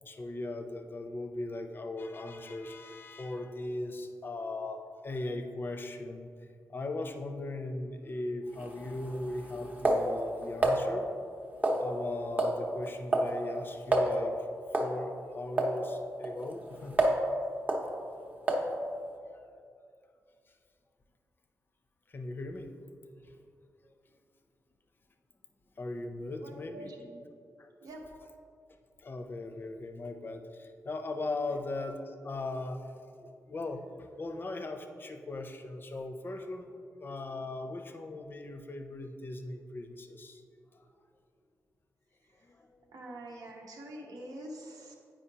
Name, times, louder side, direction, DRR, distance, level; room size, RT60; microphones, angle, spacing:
voice 1, 0.0-6.3 6.7-11.1 11.8-14.5 14.8-17.0 22.1-22.7 23.2-23.4 25.8-26.9 27.6-27.7 29.0-32.9 33.2-40.4 40.7-40.9 42.4-42.9, left 2 dB, 35° left, 6 dB, 0.5 m, -39 dB
sound 1, 8.5-10.8 11.6-12.1 12.4-12.6 12.9-13.3 13.6-13.7 13.9-14.1 14.7-15.0 15.6-15.7 16.2-17.3 17.7-17.9 18.5-18.7, right 1 dB, 25° right, 0.7 m, -29 dB
voice 2, 26.4-27.2 27.8-28.0 42.9-44.9, right 1 dB, 85° right, 0 dB, 0.9 m, -45 dB
8.8 x 5.0 x 2.8 m, 2.4 s
wide cardioid pair, 135°, 6 cm